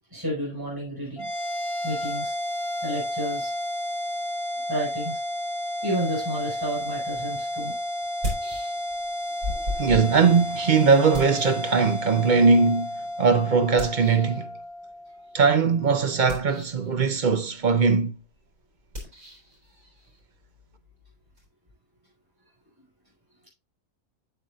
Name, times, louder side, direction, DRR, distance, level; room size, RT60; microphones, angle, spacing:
voice 1, 0.1-1.3 1.8-2.3 2.8-3.5 4.7-5.2 5.8-7.7, equal, 15° right, 4.8 m, -31 dB
sound 1, 1.2-15.8, left 1 dB, 75° left, 2.6 m, -32 dB
sound 2, 8.0-9.1 9.4-12.3 13.8-14.4 16.1-16.9 18.9-21.5, left 1 dB, 70° right, 4.2 m, -36 dB
voice 2, 9.8-12.9 13.2-14.5 15.3-18.2, right 5 dB, 45° right, 0.6 m, -20 dB
8.2 x 7.8 x 2.4 m
omnidirectional pair, 1.5 m